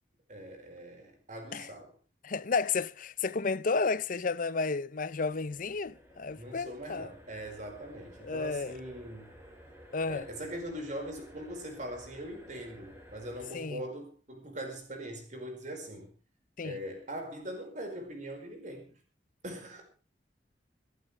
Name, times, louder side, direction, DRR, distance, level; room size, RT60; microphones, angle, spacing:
voice 1, 0.3-1.9 6.4-9.3 10.1-16.1 16.6-19.0 19.4-19.8, right 1 dB, 45° right, 5.2 m, -41 dB
voice 2, 2.2-7.1 8.2-8.7 9.9-10.3 13.5-13.8 16.6-16.8, left 4 dB, 50° left, 0.6 m, -32 dB
sound 1, 5.1-13.6, equal, 15° right, 5.1 m, -54 dB
26.0 x 12.5 x 3.4 m
head